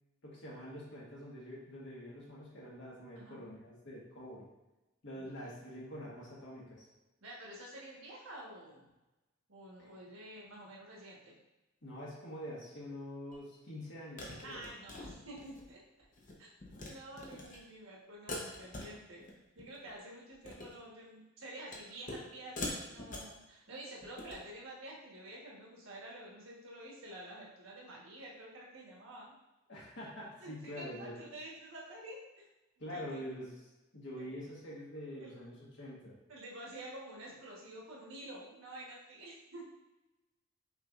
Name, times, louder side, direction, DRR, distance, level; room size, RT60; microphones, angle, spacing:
voice 1, 0.2-4.5 5.0-6.8 11.8-14.7 29.7-31.1 32.8-33.6 33.9-36.1, equal, 60° left, -6 dB, 1.5 m, -45 dB
voice 2, 5.1-5.5 7.2-8.9 9.5-11.3 14.4-15.8 16.4-16.5 16.9-19.3 19.5-29.4 30.4-32.5 32.9-33.2 34.2-34.3 35.2-35.3 36.3-39.6, right 1 dB, 85° right, -3 dB, 1.3 m, -49 dB
sound 1, 13.3-13.4 14.2-15.7 16.0-16.3 16.6-16.9 17.2-17.6 18.3-19.3 19.6-19.9 20.3-20.8 21.7-22.3 22.6-23.4 24.0-24.4, left 2 dB, 40° left, 0.8 m, -43 dB
5.8 x 3.3 x 2.5 m, 1.0 s
head